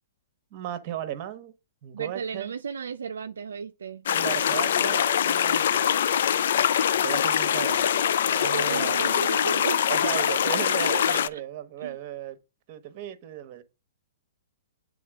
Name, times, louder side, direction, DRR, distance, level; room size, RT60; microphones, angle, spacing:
voice 1, 0.5-1.5 1.8-2.5 4.1-5.9 7.0-7.9 8.3-9.1 9.9-12.4 12.7-13.6, right 11 dB, 40° right, 1.1 m, -35 dB
voice 2, 1.9-4.0 8.5-9.9 10.7-10.8 11.1-11.4 11.8-12.0, right 6 dB, 85° right, 0.5 m, -34 dB
sound 1, 4.1-11.3, left 9 dB, 65° left, 0.4 m, -23 dB
8.5 x 3.7 x 3.5 m
hypercardioid pair, 130°, 0 cm